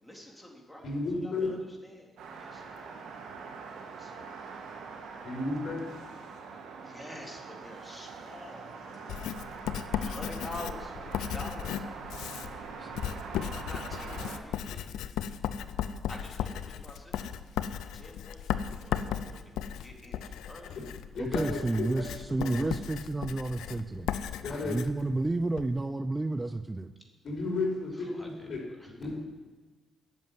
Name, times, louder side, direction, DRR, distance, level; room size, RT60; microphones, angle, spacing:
voice 1, 0.0-0.9 1.2-1.6 1.8-3.0 3.8-4.5 6.8-9.0 9.9-11.9 13.5-14.9 16.1-17.4 17.9-20.8 28.0-28.5 28.8-28.9, left 1 dB, 5° left, -1 dB, 3.7 m, -47 dB
voice 2, 0.8-1.5 5.2-5.9 9.6-9.8 21.1-22.0 22.4-22.6 24.4-24.8 27.2-28.6 29.0-29.1, left 3 dB, 55° left, -1 dB, 5.0 m, -33 dB
sound 1, 2.2-14.4, right 5 dB, 80° right, 1.6 m, -43 dB
Writing, 9.1-25.7, left 9 dB, 85° left, 0.5 m, -36 dB
voice 3, 21.1-24.1 24.6-26.9, right 2 dB, 20° right, 10 dB, 0.6 m, -31 dB
11.0 x 7.3 x 9.4 m, 1.3 s
supercardioid pair, 55°, 0 cm